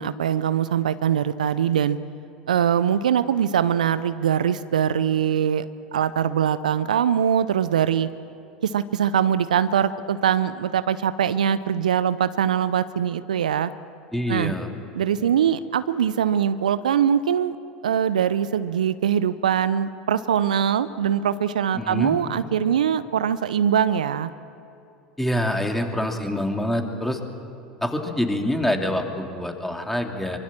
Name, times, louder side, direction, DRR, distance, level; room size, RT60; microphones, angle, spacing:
voice 1, 0.0-2.0 2.5-5.6 5.9-8.1 8.6-13.7 14.3-14.5 15.0-17.6 17.8-24.3, right 9 dB, 75° right, 15 dB, 0.6 m, -22 dB
voice 2, 14.1-14.7 21.7-22.2 25.2-27.2 27.8-30.4, left 1 dB, 5° left, 4 dB, 2.8 m, -26 dB
24.0 x 24.0 x 7.5 m, 2.7 s
figure-of-eight pair, 80°, 4 cm